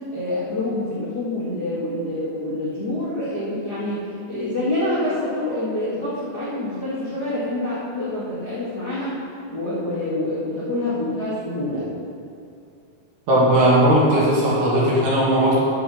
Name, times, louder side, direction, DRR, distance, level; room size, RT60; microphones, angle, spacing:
voice 1, 0.1-4.0 4.3-9.2 9.5-11.9, left 1 dB, 60° left, -10 dB, 1.0 m, -26 dB
voice 2, 13.3-15.6, right 1 dB, 55° right, -7 dB, 2.8 m, -17 dB
9.5 x 7.4 x 6.4 m, 2.4 s
omnidirectional pair, 5.5 m